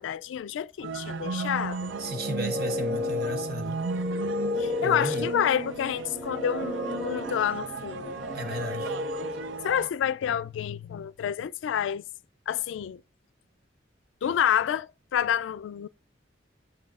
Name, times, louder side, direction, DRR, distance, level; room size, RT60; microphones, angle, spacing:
voice 1, 0.0-1.9 4.6-8.2 9.6-12.0 12.5-13.0 14.2-15.9, left 9 dB, 80° left, 0.3 m, -29 dB
sound 1, 0.8-9.9, right 5 dB, 80° right, 0.5 m, -35 dB
sound 2, 1.8-9.7, left 3 dB, ahead, 0.4 m, -33 dB
voice 2, 2.0-3.8 4.8-5.3 8.3-9.0, equal, 55° right, 1.2 m, -34 dB
7.7 x 6.0 x 2.4 m
head